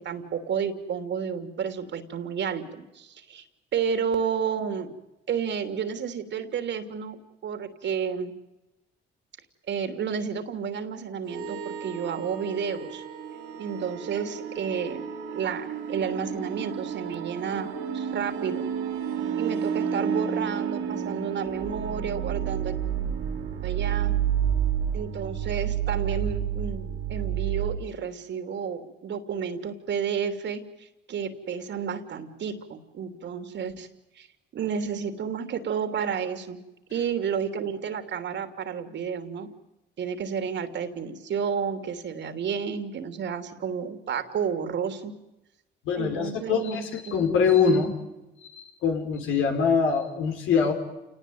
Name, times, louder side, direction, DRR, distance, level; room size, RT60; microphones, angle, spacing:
voice 1, 0.0-3.4 3.7-4.9 5.3-8.3 9.7-13.0 13.6-18.7 19.4-22.7 23.6-24.1 24.9-33.9 34.2-34.3 34.5-36.6 36.9-39.5 40.0-45.1 46.0-47.3, right 7 dB, 65° right, 8 dB, 3.2 m, -31 dB
sound 1, 11.3-27.8, right 8 dB, 90° right, 5.9 m, -30 dB
voice 2, 45.9-46.8 47.1-48.0 48.5-50.7, left 6 dB, 85° left, 4 dB, 5.3 m, -23 dB
29.0 x 19.0 x 9.5 m, 0.98 s
cardioid pair, 90°, 20 cm